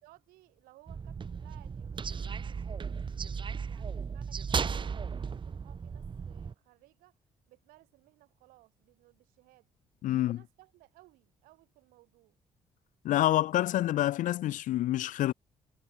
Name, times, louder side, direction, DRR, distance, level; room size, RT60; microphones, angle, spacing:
voice 1, 0.0-7.2 7.5-9.7 10.1-12.4, right 20 dB, 80° right, 3.4 m, -61 dB
sound 1, 0.9-6.5, right 6 dB, 35° right, 0.7 m, -36 dB
voice 2, 10.0-10.4 13.0-15.3, left 14 dB, 65° left, 0.4 m, -27 dB
hypercardioid pair, 55°, 14 cm